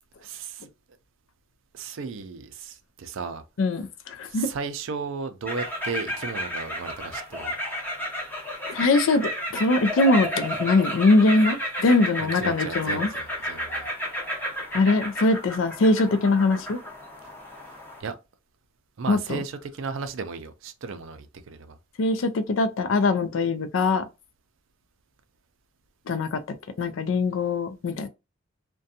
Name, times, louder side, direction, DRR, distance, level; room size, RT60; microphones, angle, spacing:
voice 1, 0.2-0.7 1.7-3.4 4.3-7.5 8.8-8.9 12.2-13.9 18.0-18.2 19.0-21.8, right 4 dB, 65° right, 0.4 m, -35 dB
voice 2, 3.6-4.5 8.7-13.1 14.7-16.8 19.1-19.4 22.0-24.1 26.1-28.1, left 3 dB, 70° left, 0.4 m, -22 dB
sound 1, 5.5-18.0, equal, 10° left, 0.6 m, -32 dB
2.5 x 2.2 x 2.7 m
head